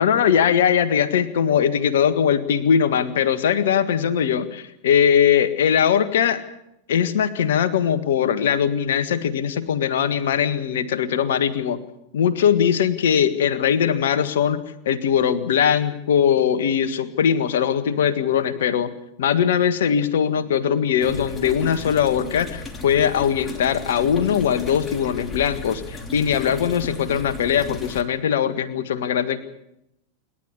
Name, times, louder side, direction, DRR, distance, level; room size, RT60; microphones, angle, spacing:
voice 1, 0.0-6.4 6.9-11.8 12.1-18.9 19.2-29.4, left 8 dB, 60° left, 11 dB, 1.8 m, -20 dB
sound 1, 21.0-28.0, left 3 dB, 20° left, 2.7 m, -35 dB
28.0 x 11.5 x 9.9 m, 0.84 s
figure-of-eight pair, 90°, 0 cm